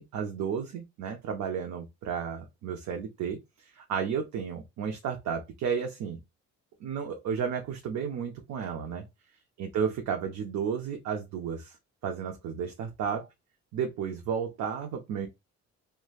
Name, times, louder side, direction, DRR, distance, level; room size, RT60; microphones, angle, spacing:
voice 1, 0.0-6.2 6.8-9.0 9.6-11.8 12.0-13.3 13.7-15.3, right 7 dB, 70° right, 0.6 m, -33 dB
3.1 x 2.1 x 2.4 m
cardioid pair, 90°, 30 cm